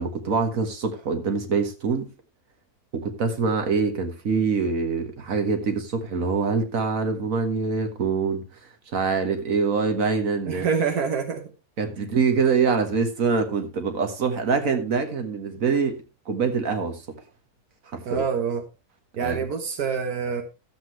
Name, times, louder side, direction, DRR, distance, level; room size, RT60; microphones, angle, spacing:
voice 1, 0.0-2.1 2.9-8.4 8.9-10.6 11.8-17.0 17.9-18.2 19.2-19.4, right 5 dB, 65° right, 1.9 m, -24 dB
voice 2, 10.5-11.5 12.0-12.1 18.1-18.6 19.2-20.4, right 6 dB, 85° right, 1.6 m, -26 dB
13.5 x 7.8 x 3.2 m
omnidirectional pair, 1.6 m